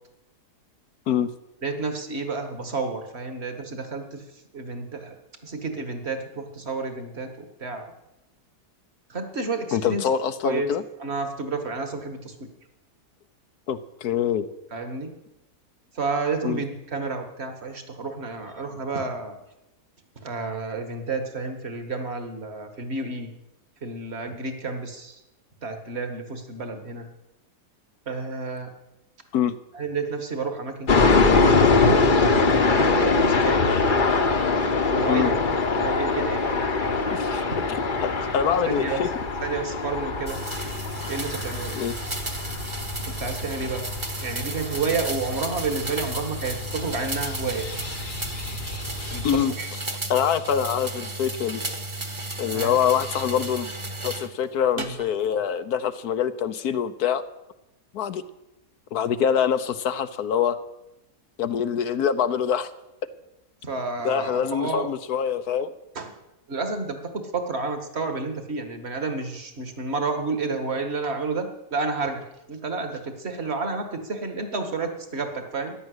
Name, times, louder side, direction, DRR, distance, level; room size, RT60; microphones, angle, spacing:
voice 1, 1.6-4.2 4.5-5.1 5.4-7.3 7.6-7.9 9.1-10.0 10.4-10.7 11.0-12.5 14.7-15.1 16.0-19.4 20.2-23.3 23.8-25.2 25.6-27.1 28.1-28.7 29.7-31.2 31.8-33.7 34.9-35.3 35.7-37.2 38.7-39.0 39.4-40.4 41.1-41.8 43.1-43.9 44.2-47.7 49.1-49.7 52.5-52.8 54.8-54.9 63.6-64.9 66.0-66.1 66.5-75.8, right 4 dB, 40° right, 6 dB, 2.0 m, -30 dB
voice 2, 9.7-10.8 13.7-14.5 16.4-16.6 29.3-29.6 35.0-35.3 37.1-37.4 38.0-39.1 41.7-41.9 49.2-49.8 50.1-51.6 52.4-53.7 54.0-57.2 57.9-58.2 58.9-60.6 61.4-62.7 64.0-65.7, left 8 dB, 70° left, 12 dB, 1.3 m, -25 dB
sound 1, 30.9-49.4, left 3 dB, 35° left, 1.1 m, -24 dB
sound 2, 40.3-54.3 54.8-55.3, right 2 dB, 20° right, 1.4 m, -34 dB
14.5 x 11.0 x 8.1 m, 0.91 s
omnidirectional pair, 1.7 m